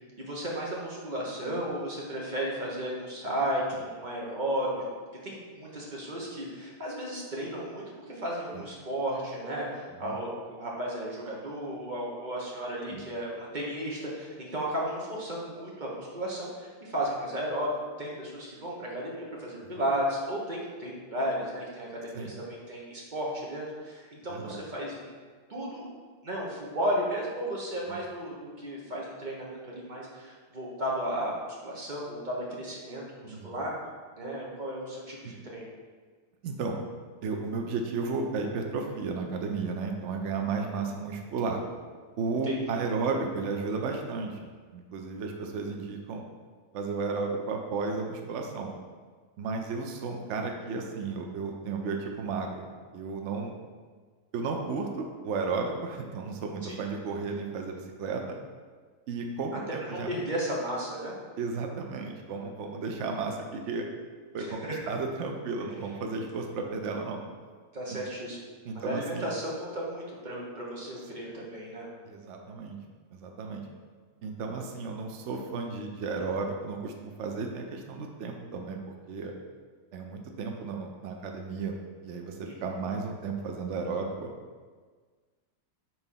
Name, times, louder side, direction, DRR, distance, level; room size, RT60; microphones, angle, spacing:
voice 1, 0.2-4.8 5.2-17.7 18.0-25.1 25.5-25.9 26.2-33.7 34.1-35.7 42.4-42.6 56.6-56.8 59.8-61.1 64.4-64.7 67.7-68.4 68.7-71.9 82.4-82.5, right 1 dB, 35° right, -4 dB, 1.1 m, -34 dB
voice 2, 24.3-24.6 27.9-28.0 33.2-33.6 35.2-35.3 36.4-36.8 37.2-41.6 42.2-46.2 46.7-48.7 49.4-52.7 52.9-53.6 54.3-58.2 59.1-60.1 61.4-63.8 64.3-67.2 67.9-68.0 68.6-69.3 72.1-72.8 73.1-73.6 74.2-78.8 79.1-79.3 79.9-81.8 82.0-84.3, right 4 dB, 60° right, 2 dB, 0.8 m, -33 dB
4.5 x 3.9 x 5.6 m, 1.5 s
omnidirectional pair, 1.7 m